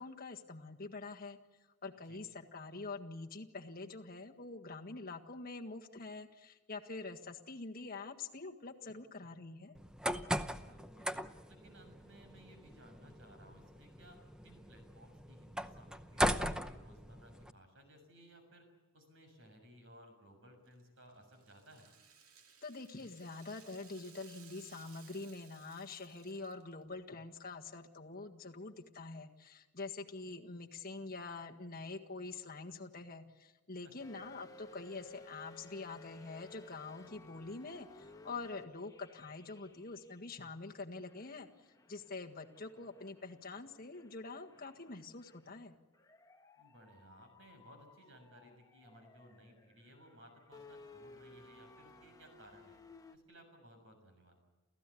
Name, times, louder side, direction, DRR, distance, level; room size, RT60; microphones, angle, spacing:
voice 1, 0.0-1.4 1.8-9.8 22.6-45.7, left 3 dB, 40° left, 3 dB, 1.7 m, -46 dB
sound 1, 9.7-17.5, equal, 5° right, 0.7 m, -39 dB
voice 2, 10.4-18.7 18.9-21.9 33.8-33.9 46.6-52.8 53.1-54.4, equal, 60° right, 5 dB, 6.8 m, -60 dB
Rattle (instrument), 20.6-26.9, right 6 dB, 80° right, 2.4 m, -61 dB
sound 2, 34.0-40.6 41.0-53.2, left 2 dB, 15° left, 1.3 m, -59 dB
29.0 x 15.5 x 8.5 m, 1.2 s
head